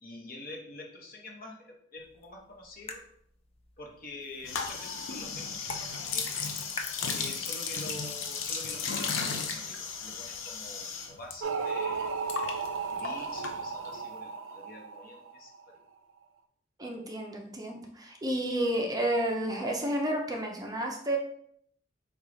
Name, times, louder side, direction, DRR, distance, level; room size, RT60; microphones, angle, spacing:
voice 1, 0.0-3.0 3.8-6.6 7.1-15.9, left 2 dB, 50° left, 0 dB, 0.9 m, -47 dB
sound 1, 2.0-8.0, left 3 dB, 30° left, 0.4 m, -47 dB
sound 2, 4.4-11.4 11.6-14.0, left 5 dB, 80° left, 0.6 m, -35 dB
sound 3, 11.4-15.6, right 5 dB, 75° right, 0.4 m, -35 dB
voice 2, 16.8-21.2, right 1 dB, 20° right, 1 dB, 0.5 m, -31 dB
4.7 x 2.3 x 3.9 m, 0.68 s
head